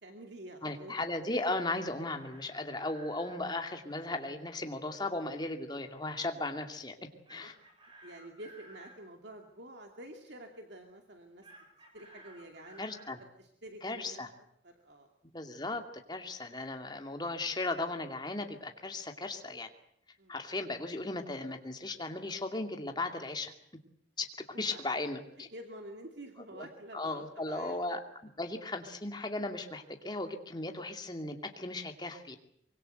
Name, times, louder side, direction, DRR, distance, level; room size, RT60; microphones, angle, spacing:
voice 1, 0.0-1.0 7.4-7.5 8.0-11.5 11.9-12.9 13.4-14.2 14.6-15.1 16.3-16.4 20.2-20.4 24.5-24.8 25.5-27.8, right 1 dB, 65° right, 4 dB, 2.6 m, -48 dB
voice 2, 0.6-6.9 7.3-7.5 12.8-13.2 13.8-14.3 15.3-15.8 16.1-19.7 20.3-23.5 24.2-24.3 24.6-25.5 26.5-26.7 26.9-32.4, left 2 dB, 20° left, 4 dB, 2.4 m, -36 dB
Chicken rooster, 1.6-3.4 7.3-9.0 11.4-13.2, right 1 dB, 25° right, 6.7 m, -56 dB
24.5 x 24.0 x 8.0 m, 0.71 s
head